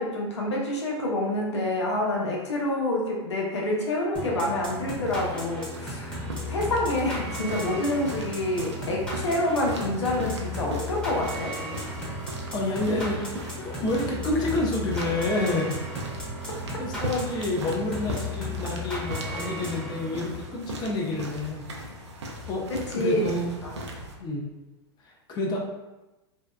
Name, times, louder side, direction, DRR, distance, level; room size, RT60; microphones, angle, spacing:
voice 1, 0.0-11.5 22.7-23.4 23.6-23.8, left 1 dB, 90° left, -3 dB, 0.7 m, -27 dB
sound 1, 4.2-20.5, equal, 5° left, 1.0 m, -35 dB
sound 2, 4.7-24.2, equal, 90° right, 0.5 m, -39 dB
voice 2, 12.5-15.8 16.8-21.7 22.5-23.5 24.1-24.5 25.0-25.6, left 2 dB, 30° left, -1 dB, 0.5 m, -29 dB
2.7 x 2.2 x 2.2 m, 1.0 s
hypercardioid pair, 105°, 14 cm